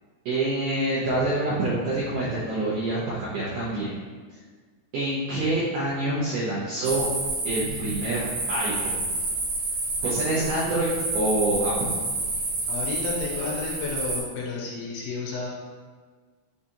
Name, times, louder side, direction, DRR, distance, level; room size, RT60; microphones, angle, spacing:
voice 1, 0.3-4.0 4.9-7.1 7.4-9.0 10.0-11.9, right 2 dB, 85° right, -10 dB, 1.9 m, -26 dB
sound 1, 6.8-14.2, right 2 dB, 65° right, 2.4 m, -29 dB
voice 2, 12.7-15.5, left 4 dB, 80° left, -3 dB, 2.5 m, -31 dB
6.5 x 2.4 x 2.8 m, 1.5 s
omnidirectional pair, 5.0 m